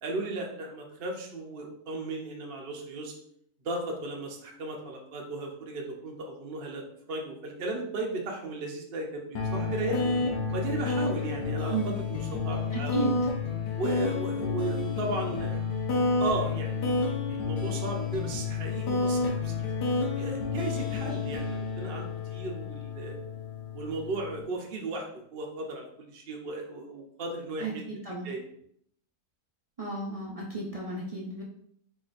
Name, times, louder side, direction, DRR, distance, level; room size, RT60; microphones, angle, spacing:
voice 1, 0.0-3.1 3.6-10.2 10.5-13.1 13.8-15.6 16.2-19.5 20.1-23.2 23.7-27.9 28.2-28.4, right 2 dB, 45° right, 0 dB, 0.8 m, -36 dB
sound 1, 9.3-24.4, left 4 dB, 90° left, 1.5 m, -30 dB
voice 2, 12.7-13.1 27.6-28.3 29.8-31.4, right 3 dB, 70° right, -3 dB, 0.3 m, -34 dB
4.7 x 4.1 x 2.5 m, 0.67 s
omnidirectional pair, 1.7 m